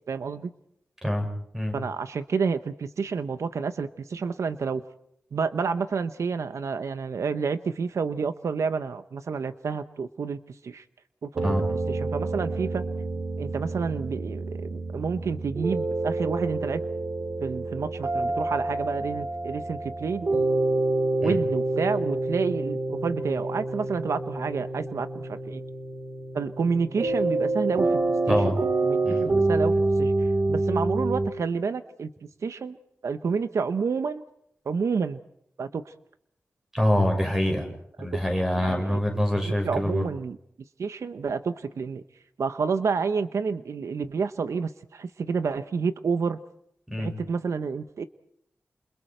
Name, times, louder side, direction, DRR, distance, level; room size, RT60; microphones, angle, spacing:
voice 1, 0.1-0.5 1.7-4.8 5.3-10.8 11.2-11.5 11.9-12.8 13.4-16.8 17.4-20.3 21.2-25.6 26.3-28.0 28.3-28.4 28.8-32.1 32.4-32.8 33.0-34.2 34.6-35.2 35.6-35.9 38.0-38.2 38.6-39.0 39.4-40.4 40.8-42.0 42.4-46.4 47.0-48.0, right 5 dB, 85° right, 11 dB, 0.9 m, -29 dB
sound 1, 11.4-31.3, right 2 dB, 45° right, 2.9 m, -27 dB
voice 2, 36.7-37.7 38.0-40.1 46.9-47.1, equal, 10° right, 3 dB, 6.2 m, -25 dB
29.5 x 28.0 x 4.5 m, 0.72 s
wide cardioid pair, 140°, 5 cm